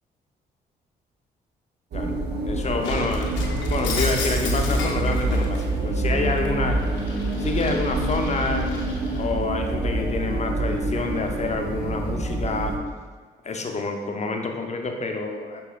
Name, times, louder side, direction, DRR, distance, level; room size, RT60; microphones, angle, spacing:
sound 1, 1.9-12.8, right 2 dB, 60° right, 0.6 m, -26 dB
voice 1, 2.4-6.8 7.4-8.7 9.2-12.7 13.4-15.6, left 3 dB, 35° left, 3 dB, 0.6 m, -28 dB
Shatter, 2.8-5.7 6.1-9.3, left 4 dB, 75° left, 0.6 m, -34 dB
6.0 x 3.0 x 2.3 m, 1.5 s
hypercardioid pair, 45°, 20 cm